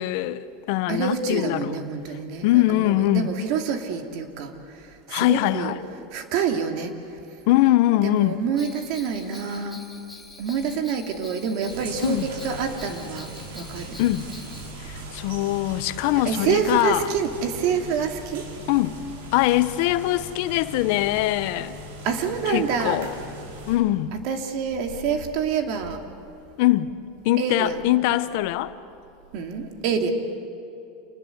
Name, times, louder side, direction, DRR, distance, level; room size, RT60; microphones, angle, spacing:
voice 1, 0.0-1.8 2.4-3.3 5.1-5.8 7.5-8.4 12.0-12.3 14.0-14.3 14.8-17.1 18.7-19.0 19.3-21.8 22.5-23.1 23.7-24.1 26.6-26.9 27.2-28.7, left 16 dB, 60° left, 1.0 m, -22 dB
voice 2, 0.9-4.5 5.1-5.7 6.1-6.9 8.0-9.8 10.4-14.0 16.2-18.4 22.0-23.0 24.2-26.0 27.4-27.9 29.3-30.1, right 6 dB, 55° right, 2.7 m, -27 dB
Bell, 8.6-14.7, left 2 dB, 5° left, 2.2 m, -45 dB
sound 1, 11.7-23.8, right 1 dB, 85° right, 5.2 m, -39 dB
28.0 x 20.0 x 8.2 m
supercardioid pair, 140°, 0 cm